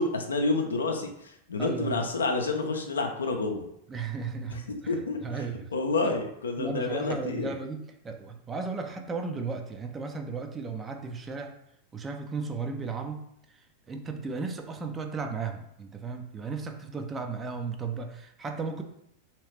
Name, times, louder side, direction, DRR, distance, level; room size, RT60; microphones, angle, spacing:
voice 1, 0.0-3.6 4.7-5.2 5.7-7.5, left 3 dB, 70° left, 3 dB, 0.5 m, -29 dB
voice 2, 1.6-2.0 3.9-4.9 5.2-5.7 6.0-6.2 6.6-11.6 11.9-13.2 13.5-13.6 13.9-18.8, right 4 dB, 20° right, 5 dB, 0.4 m, -35 dB
3.1 x 2.9 x 3.2 m, 0.74 s
figure-of-eight pair, 90°, 0 cm